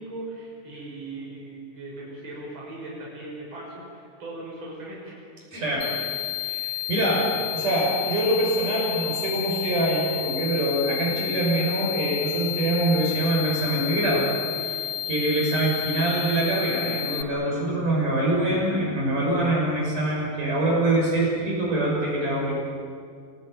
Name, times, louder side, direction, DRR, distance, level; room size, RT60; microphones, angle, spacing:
voice 1, 0.0-5.2 5.5-5.6 6.0-6.1, right 2 dB, 30° right, -3 dB, 6.8 m, -39 dB
voice 2, 5.5-5.8 6.5-7.3 7.5-14.3 14.5-22.5, right 1 dB, 60° right, -3 dB, 7.9 m, -24 dB
sound 1, 5.8-17.2, left 13 dB, 85° left, 2.6 m, -31 dB
27.5 x 19.0 x 9.2 m, 2.2 s
omnidirectional pair, 4.2 m